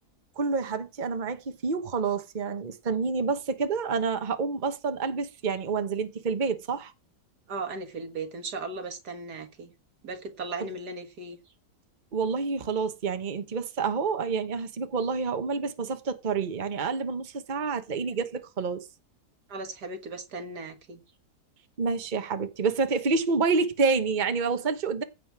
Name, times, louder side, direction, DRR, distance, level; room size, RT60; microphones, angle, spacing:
voice 1, 0.4-6.9 10.6-10.7 12.1-18.9 21.8-25.0, right 4 dB, 30° right, 1.2 m, -28 dB
voice 2, 7.5-9.7 10.0-11.4 19.5-21.0, right 3 dB, 80° right, 2.2 m, -37 dB
15.5 x 7.9 x 4.8 m
omnidirectional pair, 1.7 m